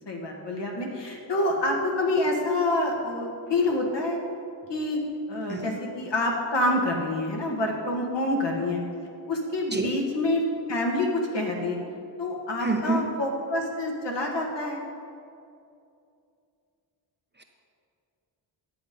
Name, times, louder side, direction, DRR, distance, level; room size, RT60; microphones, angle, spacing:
voice 1, 0.0-4.2 4.7-5.0 5.3-8.8 9.3-10.4 10.7-11.8 12.2-14.8, left 1 dB, 60° left, 0 dB, 1.9 m, -27 dB
voice 2, 12.6-13.1 17.4-17.5, right 3 dB, 20° right, 3 dB, 0.8 m, -28 dB
10.5 x 7.8 x 5.3 m, 2.5 s
cardioid pair, 105°, 48 cm